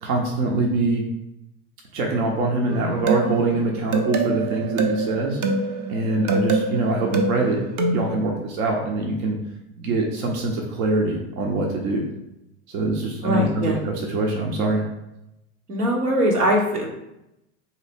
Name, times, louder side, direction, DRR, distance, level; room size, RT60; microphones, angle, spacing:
voice 1, 0.0-1.0 1.9-5.4 5.9-7.6 7.8-9.4 9.8-12.0 12.7-14.8, right 2 dB, 70° right, 0 dB, 0.9 m, -24 dB
sound 1, 2.7-8.2, right 3 dB, 40° right, 0.7 m, -25 dB
voice 2, 13.2-13.8 15.7-16.9, equal, 90° right, -1 dB, 1.1 m, -21 dB
3.8 x 2.9 x 3.5 m, 0.88 s
hypercardioid pair, 95°, 45 cm